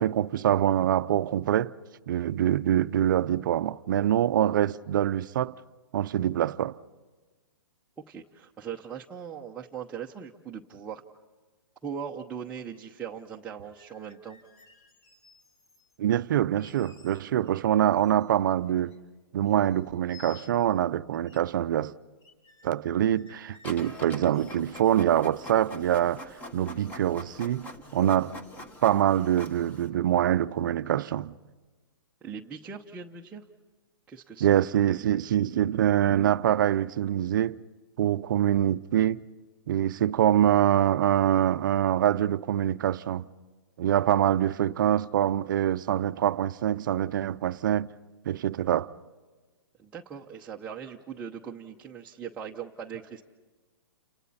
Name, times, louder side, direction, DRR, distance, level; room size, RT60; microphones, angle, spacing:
voice 1, 0.0-1.7 2.1-5.5 5.9-6.8 16.0-18.9 19.3-21.9 22.6-26.2 26.5-28.3 28.8-31.3 34.4-37.6 38.0-39.2 39.7-43.3 43.8-47.9 48.3-48.9, right 11 dB, 55° right, 0.6 m, -25 dB
voice 2, 8.1-11.0 11.8-14.4 32.2-33.4 34.1-34.6 49.8-53.2, right 7 dB, 10° right, 0.8 m, -40 dB
sound 1, 13.7-16.0 16.5-17.5 17.8-19.2 19.4-20.8 21.1-21.4 21.7-21.8 22.2-24.9, left 6 dB, 35° left, 3.0 m, -57 dB
Printer, 23.6-29.9, left 1 dB, 10° left, 1.3 m, -44 dB
29.5 x 28.0 x 4.2 m
hypercardioid pair, 155°, 13 cm